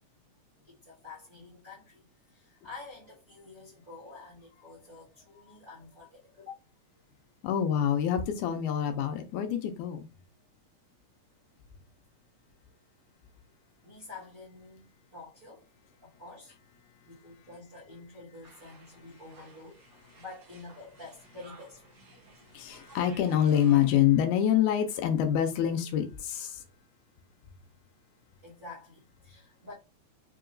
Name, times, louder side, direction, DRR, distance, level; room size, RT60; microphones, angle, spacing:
voice 1, 0.7-6.6 13.8-15.7 16.0-16.5 17.0-19.8 20.1-21.9 28.4-29.7, left 3 dB, 50° right, 1.0 m, -48 dB
voice 2, 7.4-10.1 22.5-26.6, left 10 dB, 85° left, 2.0 m, -26 dB
sound 1, 18.4-24.0, right 4 dB, 85° right, 1.0 m, -55 dB
5.1 x 2.8 x 2.5 m
omnidirectional pair, 3.5 m